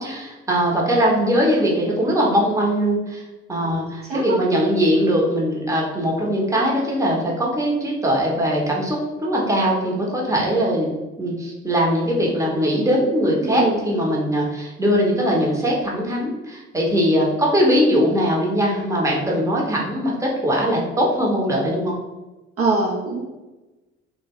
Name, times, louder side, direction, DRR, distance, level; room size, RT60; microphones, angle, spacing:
voice 1, 0.0-3.2 3.5-10.9 11.2-22.0, equal, 10° right, -3 dB, 0.8 m, -21 dB
voice 2, 13.4-13.8 22.6-23.2, right 3 dB, 40° right, -3 dB, 0.6 m, -23 dB
2.2 x 2.2 x 3.5 m, 1.1 s
figure-of-eight pair, 50°, 35 cm